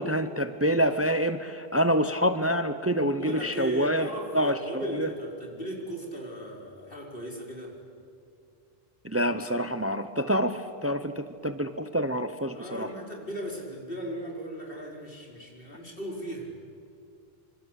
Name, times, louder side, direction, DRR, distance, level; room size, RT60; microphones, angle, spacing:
voice 1, 0.0-4.1 4.3-4.6 4.9-5.1 9.0-12.9, equal, 15° right, 10 dB, 0.9 m, -27 dB
voice 2, 3.1-7.7 12.5-16.5, right 1 dB, 60° left, 0 dB, 5.1 m, -37 dB
26.5 x 26.0 x 8.3 m, 2.5 s
omnidirectional pair, 1.1 m